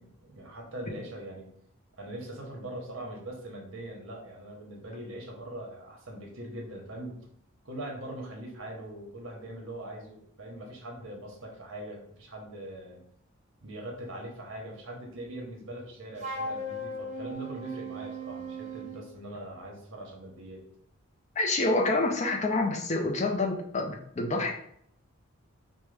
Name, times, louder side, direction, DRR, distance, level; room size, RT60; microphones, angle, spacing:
voice 1, 0.0-1.5 2.0-7.2 7.6-13.0 13.6-20.6, right 1 dB, 60° right, 0 dB, 1.0 m, -41 dB
Wind instrument woodwind instrument, 16.2-19.1, right 1 dB, 35° right, 0.5 m, -37 dB
voice 2, 21.4-24.5, left 2 dB, 30° left, 3 dB, 0.4 m, -27 dB
4.7 x 2.1 x 3.3 m, 0.68 s
head